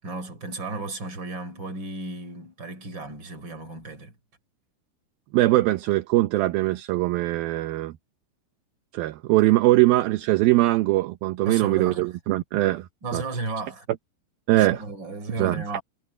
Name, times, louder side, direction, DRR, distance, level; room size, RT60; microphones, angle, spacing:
voice 1, 0.0-4.1 11.5-12.1 13.0-13.9 14.5-15.8, right 3 dB, 25° right, 4.8 m, -34 dB
voice 2, 5.3-7.9 8.9-12.9 13.1-13.2 14.5-14.8 15.4-15.6, right 18 dB, 75° right, 2.3 m, -21 dB
omnidirectional pair, 5.0 m